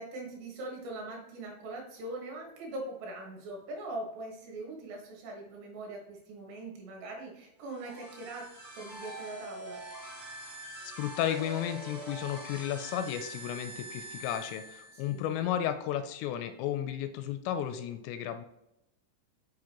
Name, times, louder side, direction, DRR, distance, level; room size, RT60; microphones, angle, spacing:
voice 1, 0.0-8.5 8.7-9.8 14.9-15.3, right 2 dB, 70° right, -1 dB, 3.6 m, -41 dB
sound 1, 7.6-15.3, right 1 dB, 15° right, 1.0 m, -44 dB
voice 2, 11.0-18.5, left 10 dB, 85° left, 9 dB, 2.7 m, -33 dB
7.5 x 6.0 x 3.0 m, 0.86 s
omnidirectional pair, 5.3 m